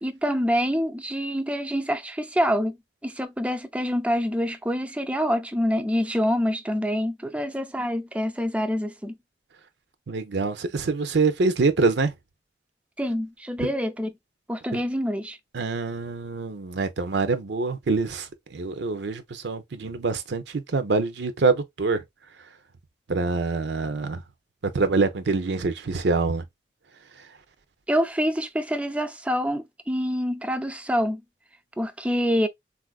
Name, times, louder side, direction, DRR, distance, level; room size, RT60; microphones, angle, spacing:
voice 1, 0.0-2.8 3.0-9.2 13.0-14.1 14.5-15.4 27.9-31.2 31.8-32.5, equal, 5° right, 0.3 m, -26 dB
voice 2, 10.1-12.1 13.6-13.7 14.7-14.8 15.5-22.0 23.1-24.2 24.6-26.4 27.2-27.3, right 4 dB, 75° right, 0.6 m, -25 dB
3.9 x 2.4 x 2.2 m
head